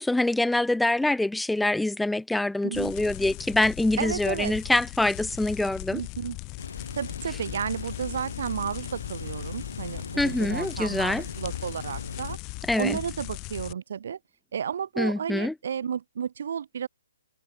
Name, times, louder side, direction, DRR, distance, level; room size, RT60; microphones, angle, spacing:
voice 1, 0.0-6.0 10.2-11.2 12.7-13.0 15.0-15.5, left 2 dB, 5° left, 0.3 m, -25 dB
sound 1, 2.7-13.7, left 28 dB, 25° left, 1.0 m, -39 dB
voice 2, 4.0-4.5 5.9-6.4 7.0-12.4 12.8-14.2 14.5-16.9, right 8 dB, 55° right, 0.8 m, -32 dB
sound 2, 6.6-12.4, left 4 dB, 70° left, 6.6 m, -39 dB
figure-of-eight pair, 135°, 0 cm